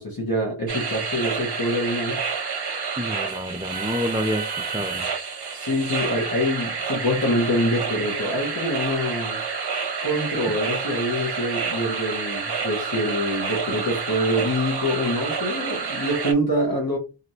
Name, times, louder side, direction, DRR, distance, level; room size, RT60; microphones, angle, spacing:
voice 1, 0.0-2.2 5.5-9.4 10.0-17.0, equal, 45° left, 1.2 m, -25 dB
sound 1, 0.7-16.3, right 5 dB, 50° right, 0.7 m, -29 dB
voice 2, 3.0-5.1, equal, 10° right, 0.4 m, -28 dB
3.1 x 2.6 x 2.7 m
wide cardioid pair, 40°, 50 cm